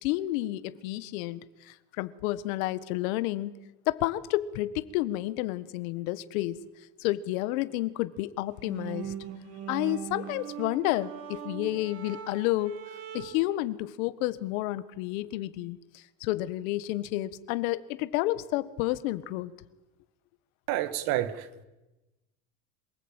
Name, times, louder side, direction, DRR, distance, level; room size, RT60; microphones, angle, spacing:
voice 1, 0.0-3.5 3.9-6.5 7.0-9.1 9.7-12.8 13.1-19.5, left 16 dB, 80° left, 1.6 m, -30 dB
sound 1, 8.5-13.6, right 9 dB, 35° right, 2.2 m, -40 dB
voice 2, 20.7-21.6, right 13 dB, 55° right, 1.9 m, -29 dB
26.5 x 19.5 x 9.0 m
cardioid pair, 170°, 41 cm